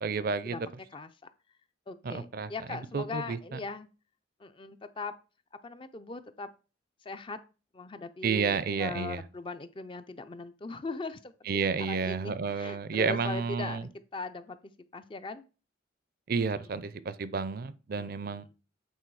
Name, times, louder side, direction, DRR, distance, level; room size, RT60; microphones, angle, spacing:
voice 1, 0.0-0.6 2.0-2.5 2.9-3.6 8.2-9.2 11.5-13.9 16.3-18.5, right 5 dB, 50° right, 0.5 m, -31 dB
voice 2, 1.9-3.9 4.4-5.1 5.6-6.5 7.0-7.4 7.7-11.3 11.8-14.6 14.9-15.4 16.6-16.7 18.0-18.5, left 3 dB, 25° left, 0.4 m, -40 dB
8.3 x 3.9 x 4.7 m
head